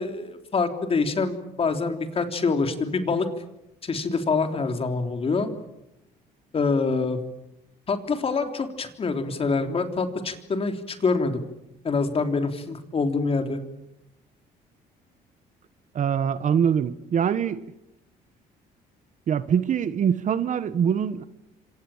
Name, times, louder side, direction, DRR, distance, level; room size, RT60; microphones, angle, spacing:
voice 1, 0.0-3.3 3.8-5.5 6.5-7.2 7.9-11.4 11.8-13.6, left 4 dB, 35° left, 3.5 m, -25 dB
voice 2, 15.9-17.6 19.3-21.3, right 8 dB, 45° right, 1.3 m, -23 dB
28.5 x 26.0 x 7.4 m
cardioid pair, 110°, 17 cm